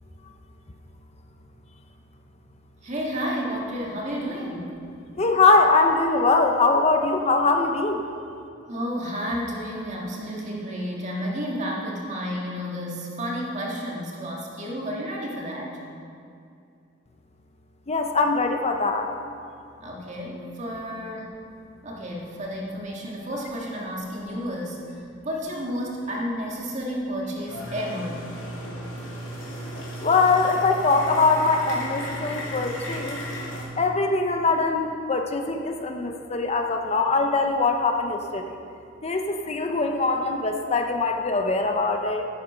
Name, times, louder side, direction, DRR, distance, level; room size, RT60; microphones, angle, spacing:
voice 1, 2.8-4.7 8.7-15.8 19.8-21.4 21.8-28.3, equal, 40° right, -2 dB, 1.9 m, -31 dB
voice 2, 5.2-8.0 17.9-19.1 30.0-33.2 33.8-38.6 39.0-42.3, left 3 dB, 35° left, 4 dB, 0.6 m, -22 dB
sound 1, 27.5-33.6, equal, 85° left, 2.7 m, -35 dB
10.0 x 9.0 x 5.5 m, 2.5 s
head